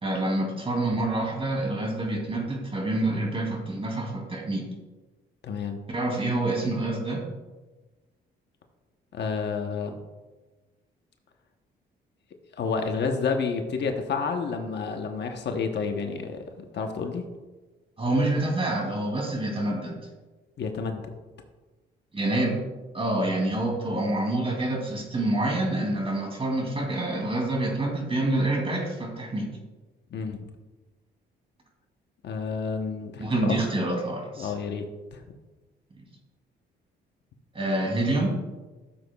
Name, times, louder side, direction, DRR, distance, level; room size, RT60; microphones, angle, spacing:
voice 1, 0.0-4.6 5.9-7.2 18.0-20.0 22.1-22.6 22.9-29.5 33.2-34.5 37.5-38.3, right 1 dB, 30° right, 0 dB, 2.7 m, -27 dB
voice 2, 5.4-5.8 9.1-9.9 12.6-17.2 20.6-21.0 23.3-23.4 30.1-30.5 32.2-33.6 34.4-34.8 35.1-35.2, left 5 dB, 60° left, 5 dB, 1.0 m, -30 dB
13.5 x 7.2 x 2.3 m, 1.2 s
cardioid pair, 90°, 20 cm